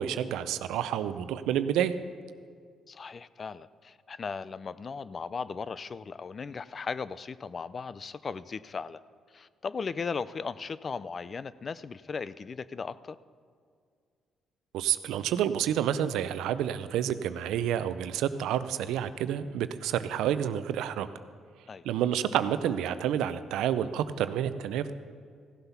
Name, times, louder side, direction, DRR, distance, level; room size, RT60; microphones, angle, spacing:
voice 1, 0.0-1.9 14.7-21.1 21.8-24.9, right 10 dB, 90° right, 13 dB, 0.5 m, -29 dB
voice 2, 2.9-9.0 9.3-13.2 21.7-21.8, left 5 dB, 40° left, 17 dB, 0.4 m, -37 dB
15.5 x 8.0 x 5.7 m, 2.1 s
cardioid pair, 90°, 0 cm